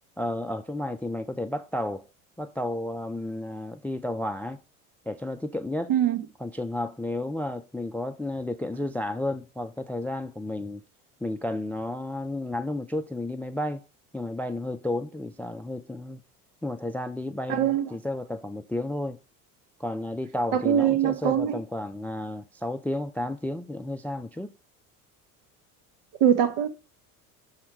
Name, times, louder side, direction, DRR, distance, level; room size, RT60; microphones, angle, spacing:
voice 1, 0.2-2.0 2.4-4.6 5.1-5.9 6.4-10.8 11.2-13.8 14.1-16.2 16.6-19.2 19.8-24.5, left 1 dB, 5° left, 0.4 m, -32 dB
voice 2, 17.5-17.9 20.6-21.6 26.2-26.7, right 10 dB, 65° right, 1.2 m, -22 dB
6.4 x 4.3 x 4.8 m
hypercardioid pair, 75°, 45 cm